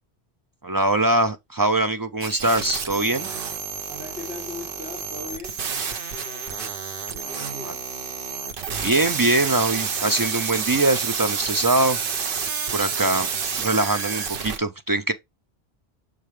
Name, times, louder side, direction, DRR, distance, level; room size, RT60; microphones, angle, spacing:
voice 1, 0.6-3.3 7.6-7.7 8.8-12.0 12.7-13.3 13.6-15.1, right 2 dB, 35° right, 0.3 m, -22 dB
sound 1, 2.2-14.6, right 6 dB, 60° right, 1.0 m, -29 dB
voice 2, 3.9-6.7 7.1-7.8, left 3 dB, 5° left, 2.8 m, -39 dB
6.6 x 5.1 x 3.2 m
omnidirectional pair, 1.1 m